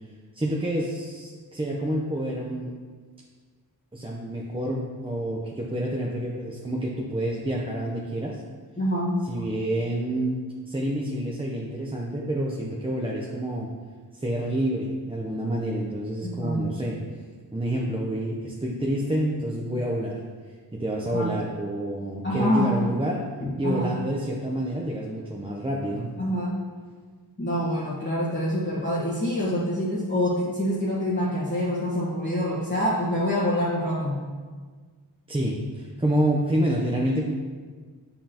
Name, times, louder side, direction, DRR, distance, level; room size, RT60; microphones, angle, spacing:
voice 1, 0.3-2.7 3.9-8.4 9.3-10.4 10.6-13.7 14.1-17.0 17.5-20.2 20.7-23.2 23.6-26.1 35.3-37.3, right 1 dB, 15° right, -3 dB, 0.7 m, -28 dB
voice 2, 8.8-9.2 16.4-16.7 21.1-21.3 22.2-22.8 23.4-23.9 26.2-26.6 27.4-34.2, equal, 30° left, -9 dB, 1.5 m, -26 dB
9.1 x 5.4 x 2.9 m, 1.5 s
wide cardioid pair, 85°, 40 cm